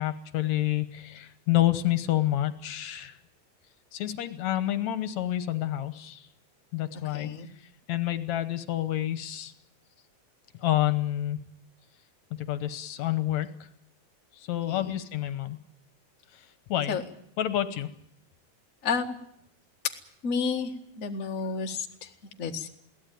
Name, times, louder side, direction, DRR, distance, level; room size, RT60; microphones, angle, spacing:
voice 1, 0.0-3.2 3.9-6.3 6.7-7.3 7.9-9.5 10.6-11.4 12.3-13.7 14.3-15.6 16.3-17.0 17.4-17.9, left 13 dB, 75° left, 11 dB, 2.2 m, -28 dB
voice 2, 7.1-7.5 14.7-15.0 16.9-17.0 18.8-19.2 20.2-20.7 21.0-22.1 22.4-22.7, left 5 dB, 35° left, 3 dB, 1.6 m, -31 dB
22.0 x 17.0 x 9.2 m, 0.71 s
omnidirectional pair, 3.3 m